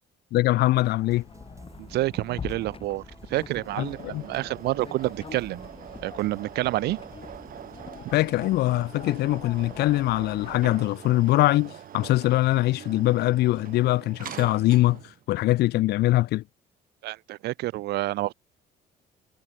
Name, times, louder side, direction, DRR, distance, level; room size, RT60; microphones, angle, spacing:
voice 1, 0.3-1.2 3.8-4.2 8.1-15.0 15.3-16.4, left 17 dB, 75° left, 1.1 m, -23 dB
sound 1, 1.0-7.9, right 3 dB, 15° right, 5.4 m, -51 dB
sound 2, 1.1-10.6, left 6 dB, 30° left, 2.0 m, -44 dB
voice 2, 1.8-3.0 3.3-5.7 6.0-7.0 17.0-18.3, right 17 dB, 80° right, 1.1 m, -28 dB
sound 3, 3.5-15.2, right 10 dB, 55° right, 4.6 m, -44 dB
cardioid pair, 110°, 17 cm